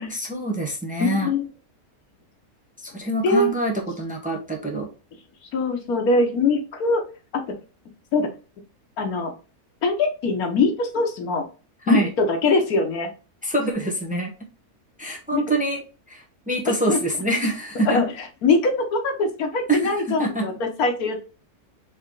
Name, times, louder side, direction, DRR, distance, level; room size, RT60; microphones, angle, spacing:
voice 1, 0.0-1.3 2.8-4.9 11.8-12.1 13.4-14.3 15.0-18.0 19.7-20.5, right 1 dB, 5° right, 0 dB, 0.9 m, -25 dB
voice 2, 1.0-1.4 3.2-3.5 5.5-7.0 7.3-7.4 8.1-8.3 9.0-9.3 9.8-11.4 11.9-13.1 15.3-15.4 16.9-17.0 17.9-18.0 18.4-21.2, left 3 dB, 85° left, 4 dB, 1.5 m, -22 dB
4.3 x 3.3 x 3.8 m, 0.34 s
omnidirectional pair, 1.5 m